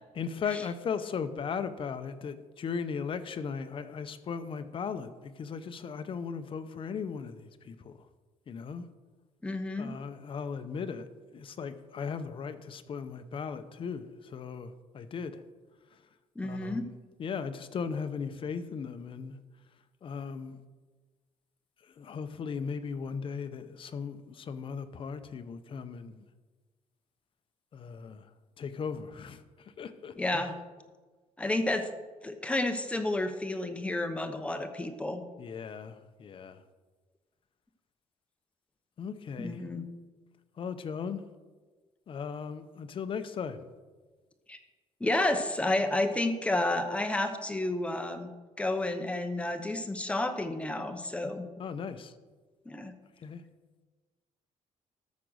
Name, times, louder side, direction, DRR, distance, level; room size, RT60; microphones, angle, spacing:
voice 1, 0.1-8.1 8.5-8.8 9.8-11.1 11.3-15.4 15.9-16.1 16.4-16.9 17.2-19.4 20.0-20.6 21.8-26.2 27.7-28.3 28.6-30.5 35.4-36.6 39.0-39.6 40.6-41.2 42.1-43.7 51.6-52.1 53.2-53.4, left 6 dB, 40° left, 10 dB, 0.7 m, -37 dB
voice 2, 9.4-9.9 16.4-16.9 30.2-30.6 31.4-31.9 32.2-35.2 39.4-39.9 44.5-44.6 45.0-48.3 48.6-51.5 52.7-52.9, left 2 dB, 10° left, 7 dB, 0.9 m, -31 dB
13.5 x 5.2 x 6.3 m, 1.3 s
cardioid pair, 135°, 13 cm